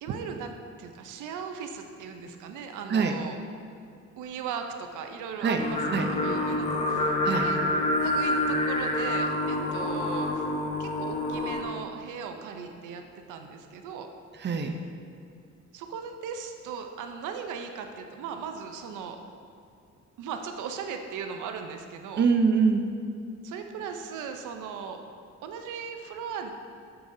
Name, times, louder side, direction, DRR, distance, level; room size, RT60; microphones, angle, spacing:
voice 1, 0.0-3.4 4.2-7.6 8.0-10.5 10.8-14.1 15.7-19.2 20.2-22.3 23.4-25.0 25.4-26.5, right 6 dB, 85° right, 5 dB, 0.6 m, -38 dB
Singing, 5.6-11.6, left 1 dB, 25° left, 1.0 m, -27 dB
voice 2, 14.4-14.8 22.2-22.9, right 5 dB, 35° right, 5 dB, 0.6 m, -24 dB
8.6 x 6.8 x 2.7 m, 2.4 s
cardioid pair, 90°, 30 cm